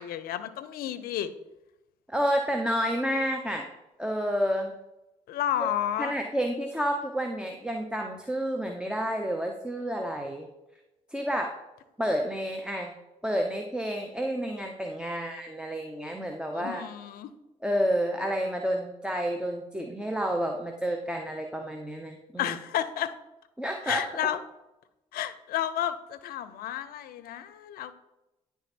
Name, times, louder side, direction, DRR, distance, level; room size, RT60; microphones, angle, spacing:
voice 1, 0.0-1.3 5.3-6.1 16.5-17.3 22.4-23.1 23.8-24.4 25.1-27.9, left 11 dB, 70° left, 14 dB, 0.6 m, -31 dB
voice 2, 2.1-3.7 4.0-4.8 6.0-10.5 11.1-11.5 12.0-12.9 13.2-16.8 17.6-22.6 23.6-24.1, equal, 5° right, 2 dB, 0.8 m, -30 dB
10.0 x 3.5 x 4.4 m, 0.97 s
supercardioid pair, 55°, 16 cm